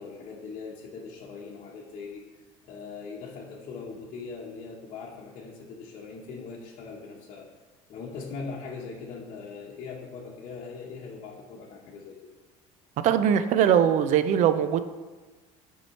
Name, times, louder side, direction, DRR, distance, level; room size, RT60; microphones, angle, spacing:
voice 1, 0.0-2.2 2.6-7.5 7.9-12.3, left 4 dB, 50° left, -3 dB, 1.0 m, -40 dB
voice 2, 13.0-14.8, right 9 dB, 50° right, 11 dB, 0.5 m, -21 dB
8.5 x 4.7 x 4.2 m, 1.3 s
cardioid pair, 130°, 15 cm